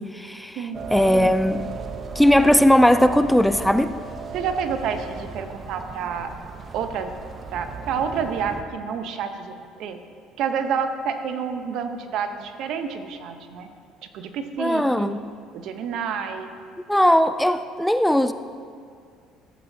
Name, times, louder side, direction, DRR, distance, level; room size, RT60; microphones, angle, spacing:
voice 1, 0.0-1.7 2.2-3.9 14.6-15.2 16.9-18.3, left 1 dB, 5° left, 11 dB, 0.3 m, -19 dB
sound 1, 0.7-8.6, right 5 dB, 35° right, 0.8 m, -35 dB
voice 2, 4.3-6.3 6.7-7.1 7.5-10.0 10.4-13.7 14.1-15.2 15.5-16.5, right 6 dB, 65° right, 7 dB, 0.8 m, -29 dB
15.0 x 8.1 x 2.7 m, 2.2 s
supercardioid pair, 85°, 0 cm